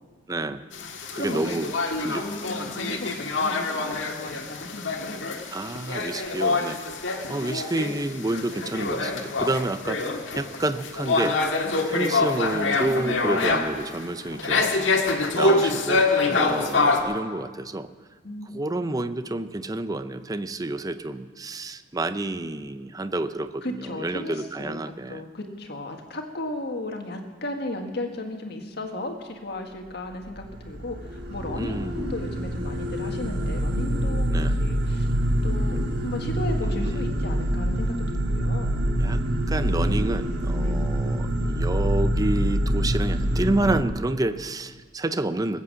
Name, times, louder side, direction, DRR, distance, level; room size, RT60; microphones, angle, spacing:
voice 1, 0.3-0.6 1.1-1.7 2.0-2.3 2.9-3.0 5.5-6.8 7.3-11.4 11.9-14.7 15.3-17.9 18.5-25.2 31.5-32.2 34.3-34.6 36.6-37.1 39.0-39.2 39.5-45.6, right 2 dB, 20° right, 12 dB, 0.5 m, -29 dB
sound 1, 0.7-17.0, left 3 dB, 80° left, 1.6 m, -26 dB
voice 2, 1.2-1.5 1.9-5.3 11.6-11.7 16.3-16.5 18.2-18.7 23.6-24.8 25.1-35.1 35.4-38.8 40.6-40.7, left 1 dB, 60° left, 3 dB, 1.7 m, -35 dB
sound 2, 30.2-43.8, equal, 60° right, 1.2 m, -25 dB
20.0 x 8.3 x 7.5 m, 1.4 s
head